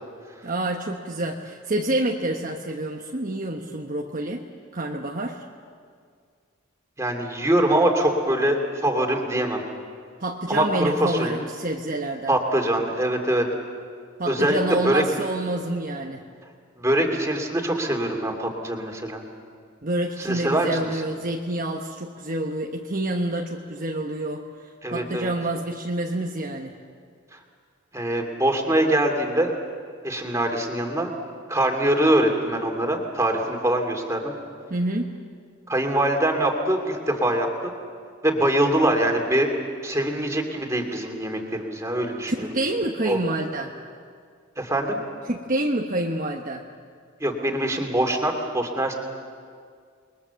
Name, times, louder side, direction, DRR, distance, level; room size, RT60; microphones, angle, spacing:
voice 1, 0.4-4.5 4.7-5.4 10.2-12.3 14.2-16.2 19.8-24.4 24.9-26.7 34.7-35.1 42.3-43.7 45.3-46.6, right 1 dB, 40° right, 1 dB, 1.2 m, -27 dB
voice 2, 7.0-9.6 10.5-11.3 12.3-13.4 14.3-14.6 14.8-15.0 16.8-19.2 20.2-21.0 24.8-25.3 27.3-27.4 27.9-29.5 30.0-31.1 31.5-34.3 35.7-37.7 38.2-39.5 39.8-42.5 43.1-43.2 44.6-45.0 47.2-48.9, right 1 dB, 15° right, 2 dB, 2.7 m, -23 dB
28.5 x 22.0 x 7.1 m, 2.1 s
head